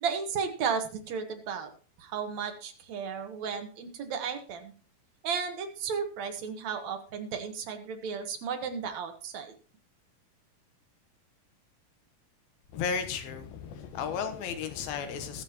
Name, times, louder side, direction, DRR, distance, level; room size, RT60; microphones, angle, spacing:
voice 1, 0.0-1.7 2.0-4.7 5.2-9.5, right 6 dB, 60° right, 2.3 m, -34 dB
voice 2, 12.7-15.4, left 6 dB, 80° left, 3.0 m, -34 dB
20.5 x 7.7 x 2.9 m
omnidirectional pair, 4.2 m